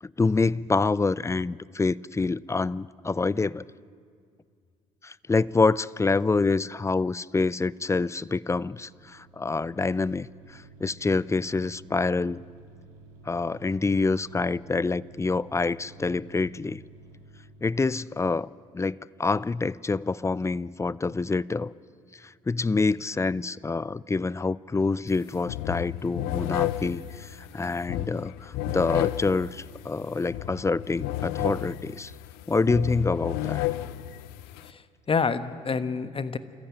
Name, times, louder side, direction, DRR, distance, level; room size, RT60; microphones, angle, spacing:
voice 1, 0.0-3.6 5.0-12.4 13.3-16.8 17.6-18.5 18.7-21.7 22.2-32.1 32.5-33.7, left 3 dB, 15° left, 22 dB, 0.5 m, -26 dB
sound 1, 8.3-18.0, right 2 dB, 80° right, 3.7 m, -52 dB
sound 2, 25.1-25.2 25.5-34.7, left 15 dB, 75° left, 0.6 m, -32 dB
voice 2, 34.6-36.4, left 5 dB, 35° left, 13 dB, 1.3 m, -28 dB
27.0 x 14.5 x 9.2 m, 2.1 s
hypercardioid pair, 55°, 16 cm